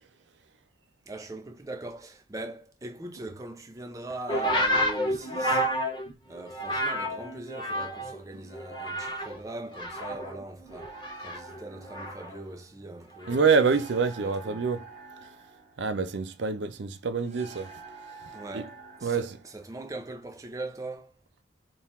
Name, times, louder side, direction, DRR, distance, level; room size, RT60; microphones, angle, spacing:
voice 1, 1.1-5.6 6.3-13.7 14.2-14.6 18.3-21.1, right 2 dB, 20° right, 0.4 m, -41 dB
sound 1, 4.3-8.2 8.5-9.4 9.7-12.4 13.2-13.6, equal, 25° left, 1.1 m, -30 dB
sound 2, 10.8-20.8, right 4 dB, 35° right, 0.8 m, -49 dB
voice 2, 13.3-14.8 15.8-17.7 18.5-18.6 19.0-19.4, right 5 dB, 75° right, 0.5 m, -26 dB
3.8 x 2.4 x 4.1 m
head